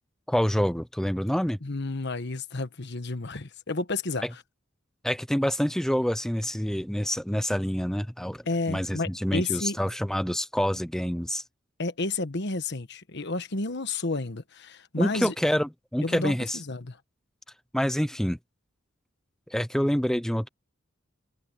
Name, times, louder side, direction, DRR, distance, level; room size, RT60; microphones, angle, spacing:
voice 1, 0.3-1.6 4.2-4.3 5.0-11.4 15.0-16.6 17.7-18.4 19.5-20.5, equal, 5° left, 0.6 m, -27 dB
voice 2, 1.6-4.2 8.4-9.8 11.8-15.3 16.0-17.0, left 3 dB, 60° left, 1.4 m, -31 dB
head